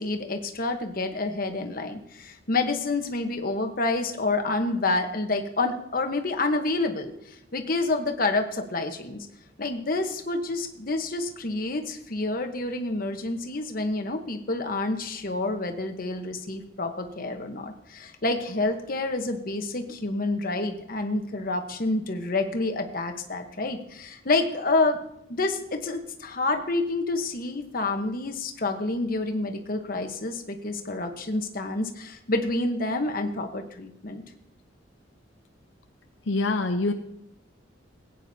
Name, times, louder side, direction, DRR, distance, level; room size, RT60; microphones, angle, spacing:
voice 1, 0.0-9.3 9.6-25.0 25.3-34.2, left 2 dB, 50° left, 5 dB, 1.1 m, -28 dB
voice 2, 36.3-36.9, left 2 dB, 75° left, 5 dB, 0.7 m, -24 dB
17.5 x 9.1 x 2.8 m, 0.76 s
head